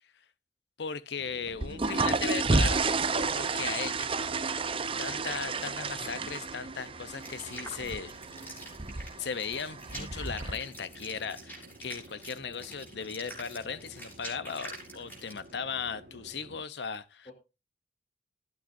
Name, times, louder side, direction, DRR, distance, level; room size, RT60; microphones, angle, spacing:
voice 1, 0.8-4.1 5.0-8.1 9.2-17.3, left 6 dB, 70° left, 0.8 m, -37 dB
Chatter / Fixed-wing aircraft airplane, 1.2-16.6, right 1 dB, 70° right, 1.8 m, -53 dB
sound 1, 1.5-10.5, right 3 dB, 30° right, 0.7 m, -31 dB
voice 2, 4.7-5.7 17.2-17.3, left 2 dB, 35° left, 2.8 m, -53 dB
sound 2, 7.2-15.5, right 1 dB, 10° left, 7.1 m, -46 dB
19.0 x 9.1 x 2.6 m
head